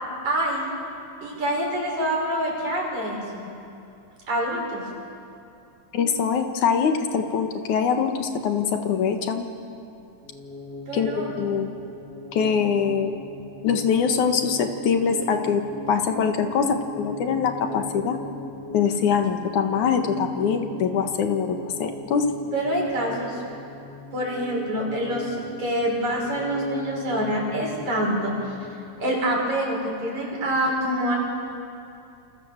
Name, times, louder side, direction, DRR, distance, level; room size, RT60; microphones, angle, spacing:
voice 1, 0.2-0.7 1.2-3.4 4.3-4.8 10.9-11.3 22.5-23.4 24.1-28.5 29.0-31.2, right 1 dB, 75° right, -1 dB, 7.2 m, -26 dB
voice 2, 5.9-9.5 10.9-11.7 12.3-13.1 13.6-15.6 15.9-18.2 18.7-22.3, left 6 dB, 90° left, 5 dB, 3.1 m, -23 dB
sound 1, 10.2-29.0, left 1 dB, 30° right, 5.1 m, -39 dB
28.0 x 28.0 x 7.4 m, 2.6 s
omnidirectional pair, 3.3 m